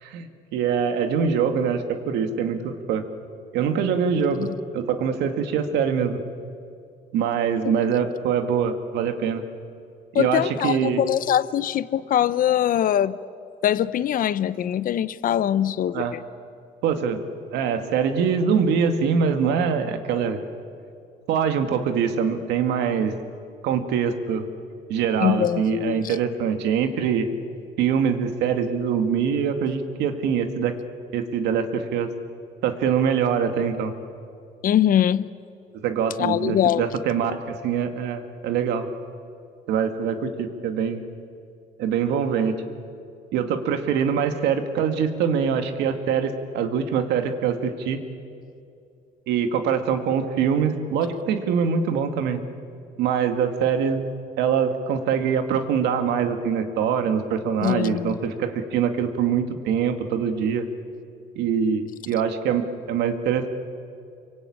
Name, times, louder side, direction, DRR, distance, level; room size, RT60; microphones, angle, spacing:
voice 1, 0.0-3.0 3.5-6.2 7.1-9.4 10.1-11.0 15.9-16.1 16.8-17.2 17.5-20.4 21.3-23.2 23.6-24.5 24.9-27.3 27.8-30.7 31.1-32.1 32.6-33.9 35.7-38.9 39.7-41.0 41.8-42.6 43.3-48.0 49.3-52.4 53.0-54.1 54.4-60.7 61.4-63.5, right 7 dB, 85° right, 7 dB, 2.1 m, -24 dB
voice 2, 10.1-13.2 13.6-16.2 25.2-26.2 34.6-35.3 36.2-36.9 57.6-58.2, left 10 dB, 55° left, 16 dB, 0.8 m, -22 dB
26.5 x 24.0 x 8.7 m, 2.5 s
cardioid pair, 110°, 17 cm